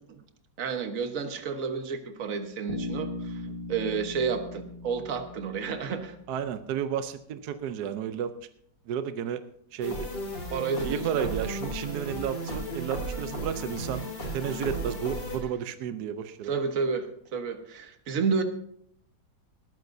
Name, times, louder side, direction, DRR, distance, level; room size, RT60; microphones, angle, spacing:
voice 1, 0.6-3.4 3.7-6.2 10.5-11.3 16.5-18.4, right 5 dB, 50° right, 6 dB, 1.6 m, -31 dB
Bass guitar, 2.7-6.7, left 2 dB, 30° left, 1.8 m, -39 dB
voice 2, 6.3-8.3 8.9-9.4 9.7-10.1 10.8-14.0 14.3-16.5, right 8 dB, 70° right, 10 dB, 1.2 m, -32 dB
sound 1, 9.8-15.4, right 1 dB, 70° left, 3.7 m, -34 dB
20.0 x 14.0 x 2.7 m, 0.65 s
omnidirectional pair, 1.9 m